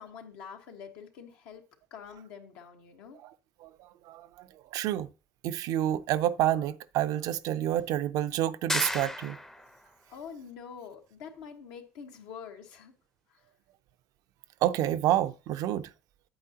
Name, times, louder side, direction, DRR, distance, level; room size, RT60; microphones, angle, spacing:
voice 1, 0.0-1.6 1.9-3.2 10.1-12.9, left 7 dB, 85° left, 1.4 m, -46 dB
voice 2, 4.7-5.1 5.4-9.4 14.6-15.9, right 12 dB, 70° right, 0.5 m, -28 dB
sound 1, 8.7-9.8, left 1 dB, 5° left, 0.5 m, -32 dB
8.7 x 8.3 x 2.8 m
supercardioid pair, 90°, 6 cm